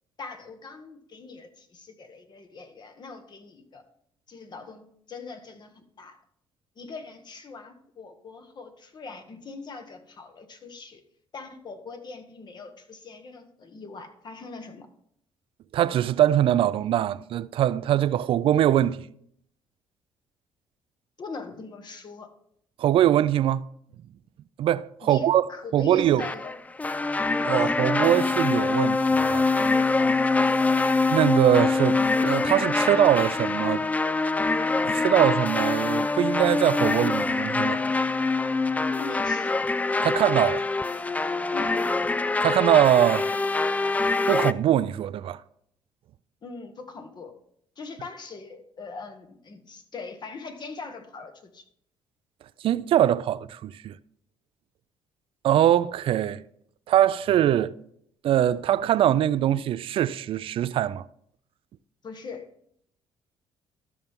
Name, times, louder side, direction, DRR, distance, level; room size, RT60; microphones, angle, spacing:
voice 1, 0.2-3.8 4.3-6.2 6.8-11.0 11.3-14.9 21.2-22.3 25.0-26.6 27.5-27.7 39.0-39.6 41.5-41.8 46.4-47.3 47.8-51.6 62.0-62.5, left 4 dB, 45° left, 1.4 m, -41 dB
voice 2, 15.7-19.1 22.8-23.6 24.6-25.5 25.7-26.3 27.4-29.4 31.1-33.8 34.8-37.8 40.0-40.6 42.4-43.3 44.3-45.4 52.6-54.0 55.4-56.4 56.9-57.8 58.2-61.0, right 11 dB, 60° right, 0.4 m, -22 dB
sound 1, 26.2-44.5, left 3 dB, 15° left, 0.3 m, -24 dB
13.0 x 5.7 x 3.6 m
supercardioid pair, 75°, 10 cm